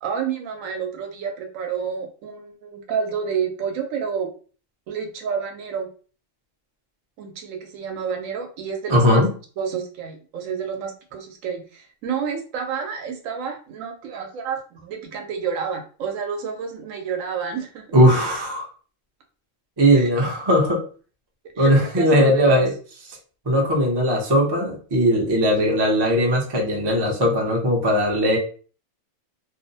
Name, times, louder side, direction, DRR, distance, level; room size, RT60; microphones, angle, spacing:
voice 1, 0.0-4.3 4.9-5.9 7.2-9.2 9.6-17.9 19.9-20.1 21.6-22.7, right 6 dB, 75° right, 3 dB, 0.9 m, -29 dB
voice 2, 8.9-9.3 17.9-18.7 19.8-20.8 21.6-22.7 23.5-28.4, equal, 35° right, -1 dB, 0.4 m, -18 dB
2.6 x 2.0 x 2.6 m, 0.40 s
omnidirectional pair, 1.4 m